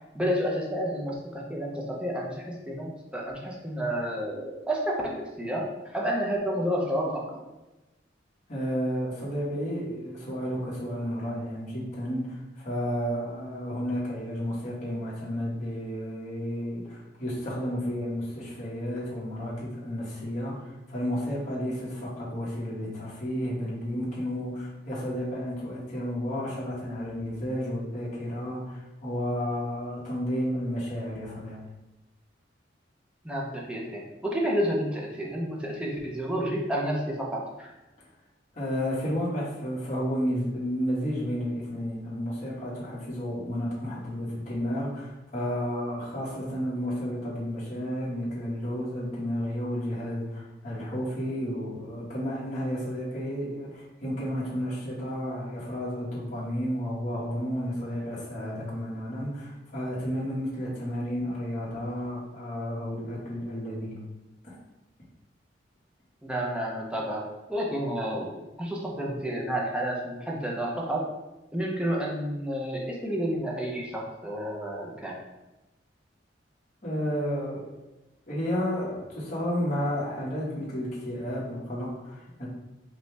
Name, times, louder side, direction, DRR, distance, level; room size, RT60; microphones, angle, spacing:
voice 1, 0.1-7.2 33.2-37.7 66.2-67.2 67.5-71.1 71.5-75.2, equal, 5° right, -3 dB, 0.7 m, -30 dB
voice 2, 8.5-31.6 38.5-64.0 64.4-64.6 76.8-77.7 78.3-82.5, equal, 40° left, -7 dB, 1.5 m, -32 dB
5.2 x 2.3 x 3.3 m, 1.0 s
head